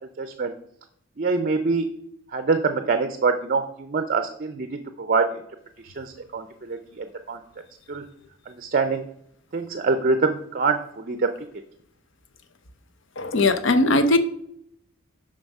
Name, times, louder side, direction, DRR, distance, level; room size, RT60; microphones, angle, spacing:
voice 1, 0.2-0.5 1.2-1.9 2.3-5.4 5.8-7.4 7.9-8.0 8.5-9.0 9.5-11.3, right 4 dB, 40° right, 9 dB, 0.5 m, -25 dB
voice 2, 13.2-14.2, left 2 dB, 60° left, 10 dB, 0.7 m, -19 dB
7.0 x 5.2 x 5.3 m, 0.72 s
head